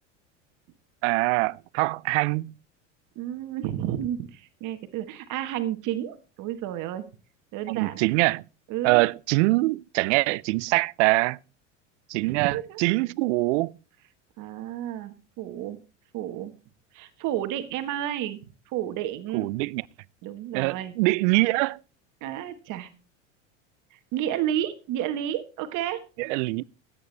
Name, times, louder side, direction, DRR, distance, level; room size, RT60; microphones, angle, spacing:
voice 1, 1.0-2.5 7.7-8.4 8.8-11.4 12.1-13.7 19.3-19.8 20.5-21.8 26.2-26.6, right 23 dB, 70° right, 0.5 m, -24 dB
voice 2, 3.1-7.0 7.5-8.0 8.7-9.1 12.2-12.8 14.4-15.8 16.1-16.5 16.9-18.4 18.7-19.5 20.2-20.9 22.2-22.9 23.9-26.0, right 11 dB, 55° right, 1.4 m, -31 dB
15.0 x 8.9 x 3.3 m
hypercardioid pair, 100°, 37 cm